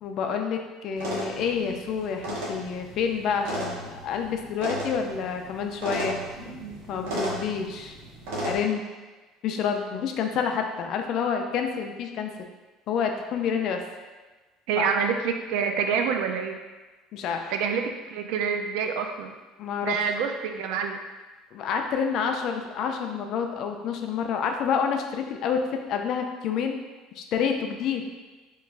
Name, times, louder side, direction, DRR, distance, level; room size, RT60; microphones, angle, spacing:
voice 1, 0.0-6.2 6.9-8.0 8.4-8.8 9.4-12.3 12.9-13.8 14.8-14.9 17.1-17.4 19.6-20.1 21.5-25.6 25.9-26.8 27.2-28.0, left 7 dB, 45° left, 4 dB, 0.3 m, -28 dB
sound 1, 1.0-8.6, right 1 dB, 85° right, 0.8 m, -35 dB
voice 2, 14.7-16.6 17.5-17.8 18.1-19.3 19.8-21.0, right 6 dB, 70° right, 5 dB, 0.3 m, -27 dB
3.0 x 2.4 x 3.4 m, 1.3 s
cardioid pair, 165°, 0 cm